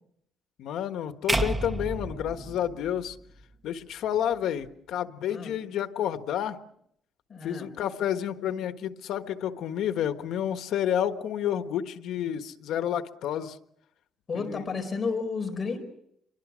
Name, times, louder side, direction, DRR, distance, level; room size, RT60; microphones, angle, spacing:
voice 1, 0.6-3.2 3.6-6.6 7.4-13.6 14.3-14.6, left 10 dB, 85° left, 9 dB, 1.4 m, -30 dB
sound 1, 1.3-3.5, right 2 dB, 15° right, 1.3 m, -31 dB
voice 2, 7.3-7.7 14.3-15.8, left 4 dB, 30° left, 5 dB, 4.6 m, -32 dB
29.0 x 24.0 x 6.3 m, 0.75 s
cardioid pair, 155°, 0 cm